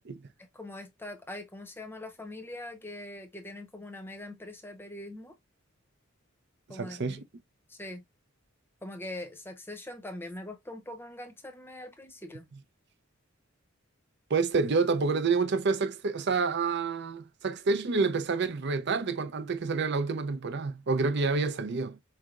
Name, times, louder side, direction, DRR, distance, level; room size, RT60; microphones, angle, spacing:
voice 1, 0.4-5.3 6.7-7.2 7.7-8.0 8.8-12.5, left 1 dB, 10° left, 0.8 m, -42 dB
voice 2, 6.7-7.2 14.3-22.0, right 4 dB, 55° right, 0.6 m, -28 dB
4.6 x 3.3 x 2.4 m
head